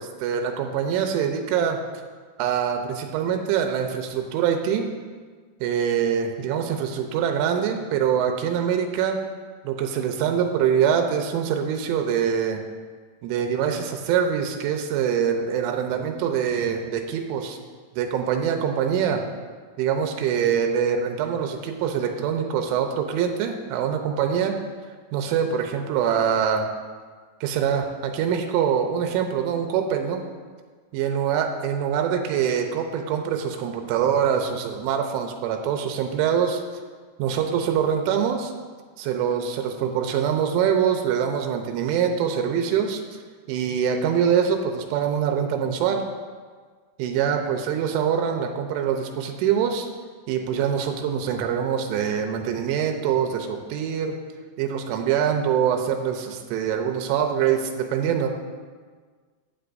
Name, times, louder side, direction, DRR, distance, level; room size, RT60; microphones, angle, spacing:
voice 1, 0.0-1.8 2.4-4.9 5.6-9.2 9.6-12.6 13.2-17.6 17.9-19.2 19.8-24.6 25.1-26.7 27.4-30.2 30.9-36.6 37.2-38.5 39.0-43.0 43.5-46.0 47.0-49.9 50.3-54.2 54.6-58.3, right 8 dB, 90° right, 4 dB, 3.2 m, -24 dB
15.0 x 9.3 x 2.6 m, 1.5 s
omnidirectional pair, 5.4 m